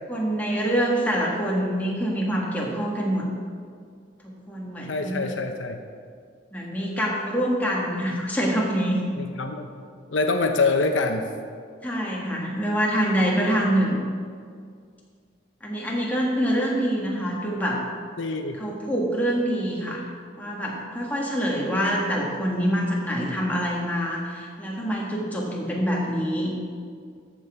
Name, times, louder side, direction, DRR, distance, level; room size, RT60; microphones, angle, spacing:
voice 1, 0.1-3.3 4.2-5.3 6.5-9.0 11.8-14.0 15.6-17.8 18.6-26.5, equal, 10° left, -3 dB, 1.6 m, -25 dB
voice 2, 4.9-5.8 9.2-9.7 10.1-11.3 18.2-18.6, left 3 dB, 80° left, 5 dB, 0.8 m, -25 dB
13.5 x 6.1 x 4.9 m, 2.1 s
head